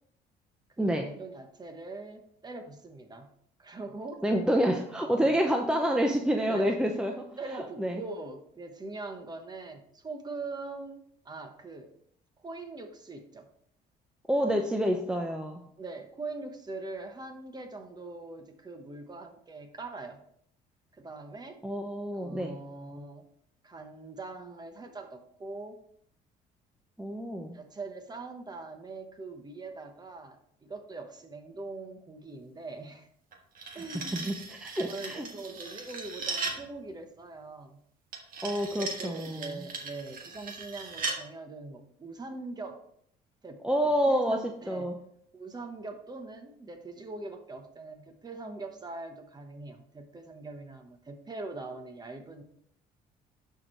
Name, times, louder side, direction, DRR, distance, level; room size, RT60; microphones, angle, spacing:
voice 1, 0.8-3.3 3.6-4.2 5.0-5.4 6.5-6.8 7.4-11.9 12.4-13.5 15.8-20.2 21.0-21.6 22.2-23.2 23.6-25.8 27.5-33.1 33.7-34.3 34.9-37.8 38.7-42.8 43.4-44.9 45.3-52.4, right 3 dB, 25° right, 6 dB, 1.1 m, -42 dB
voice 2, 4.2-7.3 7.5-8.0 14.3-15.6 21.6-22.5 27.0-27.6 33.9-35.3 38.4-39.6 43.6-45.0, equal, 5° right, 2 dB, 0.7 m, -28 dB
sound 1, 33.3-36.7 38.1-41.2, right 4 dB, 55° right, 1.5 m, -38 dB
11.5 x 4.6 x 3.1 m, 0.68 s
cardioid pair, 110°, 17 cm